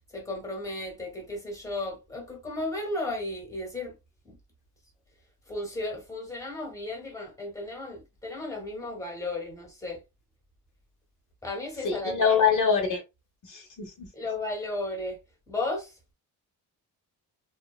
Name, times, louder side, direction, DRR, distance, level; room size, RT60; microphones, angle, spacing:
voice 1, 0.1-3.9 4.2-4.4 5.5-10.0 11.4-12.5 14.1-15.2 15.5-15.9, left 2 dB, 10° left, 0.9 m, -34 dB
voice 2, 11.8-13.0 13.5-14.1, left 6 dB, 50° left, 0.8 m, -24 dB
2.7 x 2.1 x 2.3 m
cardioid pair, 145°, 38 cm